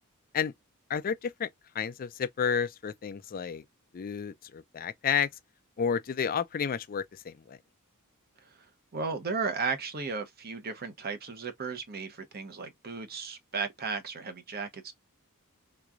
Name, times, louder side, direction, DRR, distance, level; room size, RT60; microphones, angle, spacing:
voice 1, 0.9-1.5 1.7-3.6 3.9-5.3 5.8-7.6, left 7 dB, 40° left, 0.4 m, -31 dB
voice 2, 8.9-14.9, right 4 dB, 45° right, 0.8 m, -35 dB
3.4 x 3.1 x 2.4 m
head